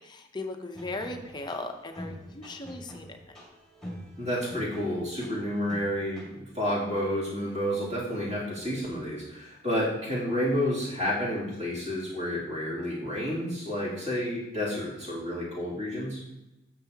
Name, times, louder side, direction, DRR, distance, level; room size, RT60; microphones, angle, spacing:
voice 1, 0.0-3.2, left 2 dB, 20° left, 5 dB, 0.7 m, -37 dB
sound 1, 0.7-6.4, equal, ahead, 1.8 m, -45 dB
voice 2, 4.2-16.2, equal, 35° right, -8 dB, 2.7 m, -30 dB
11.5 x 6.8 x 2.8 m, 0.98 s
head